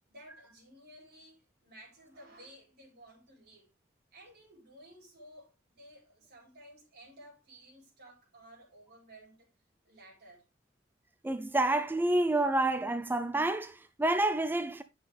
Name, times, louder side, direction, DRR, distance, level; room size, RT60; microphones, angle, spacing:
voice 1, 0.1-3.7 4.1-9.5 9.8-10.4, right 1 dB, 55° right, 4.5 m, -55 dB
voice 2, 11.2-14.8, right 2 dB, 10° right, 0.4 m, -28 dB
10.0 x 6.4 x 3.4 m
head